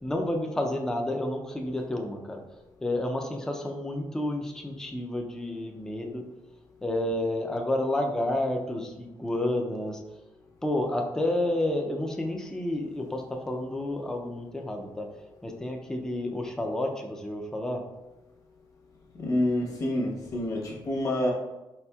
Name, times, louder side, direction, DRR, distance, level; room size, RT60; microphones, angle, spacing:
voice 1, 0.0-2.4 2.8-6.3 6.8-10.0 10.6-15.1 15.4-17.8, left 1 dB, 5° left, 2 dB, 0.4 m, -30 dB
voice 2, 19.2-21.3, left 1 dB, 40° left, -2 dB, 0.9 m, -27 dB
4.3 x 4.2 x 2.2 m, 1.0 s
cardioid pair, 155°, 9 cm